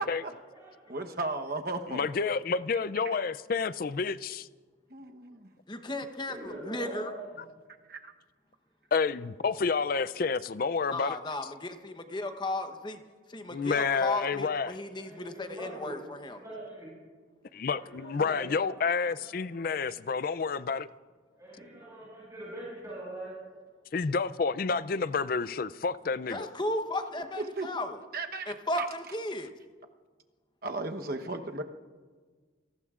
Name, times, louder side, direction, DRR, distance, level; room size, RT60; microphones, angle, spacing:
voice 1, 0.1-1.0 6.3-7.2 15.0-15.9 16.4-16.9 17.7-18.7 19.0-19.3 21.4-23.3, right 1 dB, 15° right, 6.2 m, -43 dB
voice 2, 0.9-2.1 3.0-3.2 4.9-5.5 7.9-8.1 10.2-10.3 27.6-27.7 28.1-28.9 30.6-31.6, right 3 dB, 50° right, 1.0 m, -35 dB
voice 3, 1.9-4.5 8.9-11.2 13.5-14.7 17.5-20.9 23.9-26.4, left 5 dB, 45° left, 0.4 m, -29 dB
voice 4, 5.7-7.1 10.9-13.0 13.3-16.4 26.3-28.0 28.5-29.5, left 1 dB, 25° left, 0.9 m, -35 dB
28.0 x 19.0 x 2.5 m
head